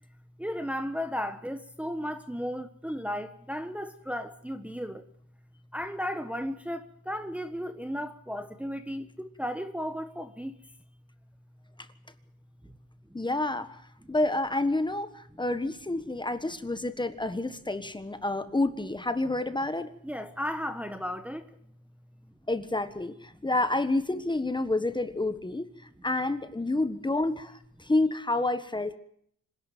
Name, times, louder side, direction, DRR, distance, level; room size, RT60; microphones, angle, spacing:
voice 1, 0.4-5.0 5.7-10.6 12.6-12.7 14.0-14.1 20.0-21.4, equal, 5° right, 1.3 m, -35 dB
voice 2, 13.1-13.7 14.1-19.9 22.5-25.7 26.0-29.0, left 2 dB, 15° left, 1.4 m, -29 dB
26.0 x 11.5 x 9.2 m
cardioid pair, 100°, 35 cm